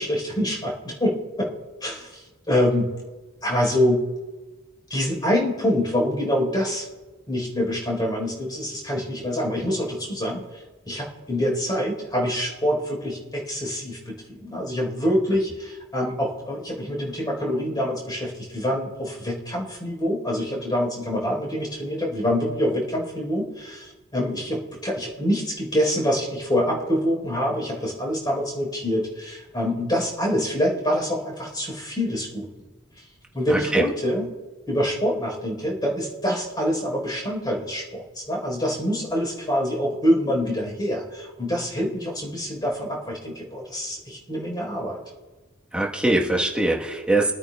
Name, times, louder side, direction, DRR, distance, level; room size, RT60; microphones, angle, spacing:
voice 1, 0.0-1.5 1.8-2.2 2.5-2.9 3.4-4.0 4.9-6.9 7.3-10.4 10.9-32.5 33.3-34.3 34.7-45.0, equal, 20° left, -2 dB, 4.0 m, -25 dB
voice 2, 33.5-33.8 45.7-47.3, right 2 dB, 5° right, -2 dB, 1.2 m, -22 dB
24.5 x 9.1 x 2.3 m, 1.2 s
head